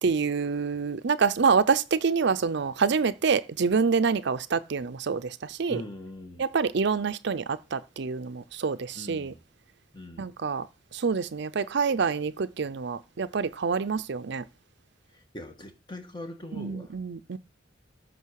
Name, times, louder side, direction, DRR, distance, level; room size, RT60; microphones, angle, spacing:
voice 1, 0.0-5.8 6.4-9.3 10.2-10.7 10.9-14.4 16.5-17.4, right 5 dB, 65° right, 0.5 m, -27 dB
voice 2, 5.7-6.4 8.9-9.4 9.9-10.3 15.1-16.9, left 1 dB, 25° left, 1.5 m, -41 dB
14.0 x 5.6 x 4.7 m
head